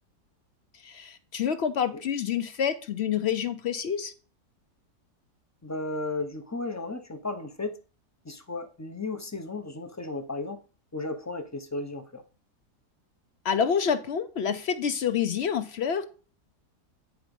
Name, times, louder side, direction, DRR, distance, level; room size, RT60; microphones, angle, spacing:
voice 1, 0.8-4.1 13.4-16.1, left 7 dB, 65° left, 0.6 m, -28 dB
voice 2, 5.6-7.8 8.2-10.6 10.9-12.2, left 3 dB, 20° left, 0.4 m, -34 dB
9.2 x 4.6 x 5.3 m
omnidirectional pair, 1.7 m